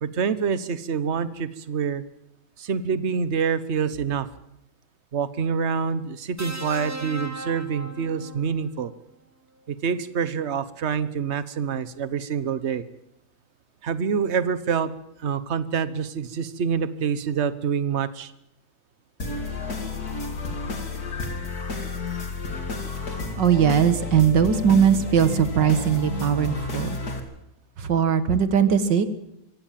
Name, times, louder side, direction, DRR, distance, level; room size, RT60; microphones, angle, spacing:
voice 1, 0.0-2.0 2.6-4.3 5.1-8.9 9.7-12.8 13.8-14.9 15.2-18.3, right 6 dB, 40° right, 14 dB, 1.1 m, -26 dB
sound 1, 6.4-8.6 10.0-10.2, right 1 dB, 10° right, 0.8 m, -36 dB
sound 2, 19.2-27.2, left 3 dB, 50° left, 3.2 m, -31 dB
voice 2, 23.4-27.0 27.8-29.1, right 8 dB, 60° right, 11 dB, 2.1 m, -20 dB
24.5 x 16.5 x 7.5 m, 0.83 s
omnidirectional pair, 2.2 m